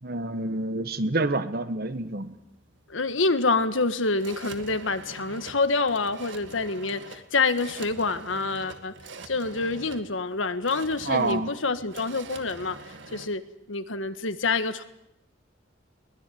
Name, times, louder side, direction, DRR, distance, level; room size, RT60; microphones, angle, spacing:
voice 1, 0.0-2.4 11.0-11.5, right 2 dB, 50° right, 12 dB, 1.5 m, -27 dB
sound 1, 1.9-13.3, right 3 dB, 70° right, 2.2 m, -45 dB
voice 2, 2.9-8.9 9.3-12.8 13.1-13.4 13.7-14.8, left 3 dB, 85° left, 11 dB, 1.6 m, -27 dB
22.0 x 20.0 x 9.4 m, 0.82 s
head